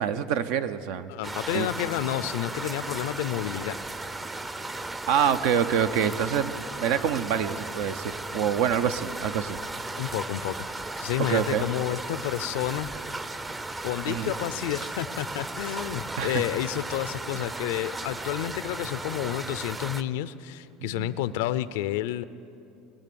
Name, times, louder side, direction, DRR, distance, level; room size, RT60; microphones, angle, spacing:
voice 1, 0.0-1.1 1.5-1.7 5.1-6.5 6.8-9.6 11.2-11.6 14.1-14.3 16.2-16.4 20.8-21.2, right 8 dB, 75° right, 11 dB, 0.7 m, -26 dB
voice 2, 1.1-3.8 10.0-10.6 11.0-12.9 13.8-22.2, left 13 dB, 80° left, 15 dB, 0.5 m, -30 dB
sound 1, 1.2-20.0, right 2 dB, 20° right, 0.6 m, -36 dB
21.5 x 7.5 x 7.0 m, 2.7 s
supercardioid pair, 100°, 0 cm